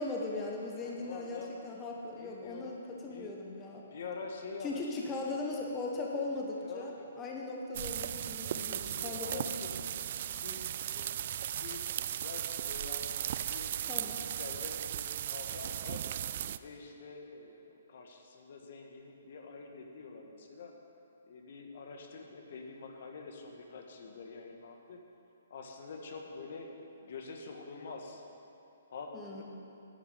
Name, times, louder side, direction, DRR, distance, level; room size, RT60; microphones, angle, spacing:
voice 1, 0.0-3.8 4.6-9.5 13.9-14.3 29.1-29.4, left 2 dB, 15° left, -2 dB, 1.1 m, -39 dB
voice 2, 0.7-1.6 2.2-2.8 3.1-3.4 3.8-5.4 6.6-7.1 8.4-9.7 10.1-16.0 16.5-20.7 21.3-25.0 25.5-26.7 27.0-28.2 28.9-29.4, left 4 dB, 60° left, 2 dB, 1.5 m, -46 dB
sound 1, 7.7-16.6, right 10 dB, 50° right, 0.3 m, -37 dB
11.0 x 6.9 x 8.4 m, 2.7 s
hypercardioid pair, 150°, 0 cm